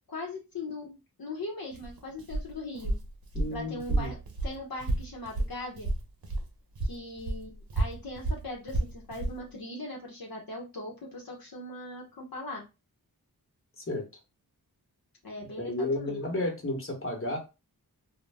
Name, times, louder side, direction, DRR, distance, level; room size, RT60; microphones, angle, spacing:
voice 1, 0.1-2.9 3.5-4.2 4.4-5.9 6.8-12.6 15.2-16.2, left 2 dB, 70° left, -2 dB, 0.8 m, -40 dB
Walk footsteps, 1.7-6.5 6.8-9.4, right 2 dB, 70° right, 0.7 m, -31 dB
voice 2, 3.3-4.1 13.8-14.0 15.6-17.4, left 1 dB, 35° left, 1 dB, 1.1 m, -32 dB
2.2 x 2.0 x 3.3 m, 0.27 s
wide cardioid pair, 45°, 37 cm